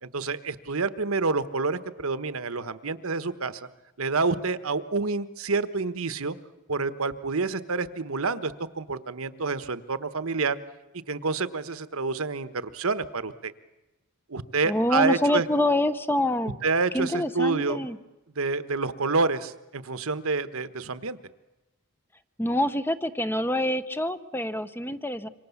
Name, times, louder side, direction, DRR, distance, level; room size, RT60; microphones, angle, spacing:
voice 1, 0.0-3.7 4.0-6.4 6.7-10.6 11.1-13.5 14.3-15.4 16.6-17.8 18.4-21.2, right 4 dB, 75° right, 12 dB, 1.2 m, -28 dB
voice 2, 14.7-16.6 16.9-18.0 22.4-25.3, left 1 dB, 10° left, 12 dB, 0.8 m, -26 dB
27.0 x 25.0 x 7.2 m, 1.0 s
head